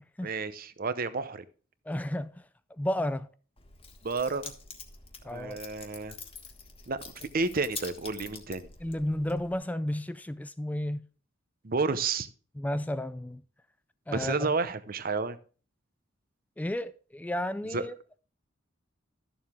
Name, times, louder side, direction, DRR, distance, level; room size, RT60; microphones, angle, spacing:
voice 1, 0.2-1.4 4.0-4.5 5.3-6.2 6.9-8.7 11.6-12.3 14.1-15.4 17.7-17.8, right 4 dB, 50° right, 0.7 m, -31 dB
voice 2, 1.9-2.4 2.8-3.3 5.2-5.6 8.8-11.1 12.6-13.4 14.1-14.5 16.6-17.9, left 1 dB, 10° left, 0.4 m, -32 dB
Keys jangling, 3.6-9.6, left 5 dB, 30° left, 1.5 m, -46 dB
13.0 x 7.1 x 3.5 m
head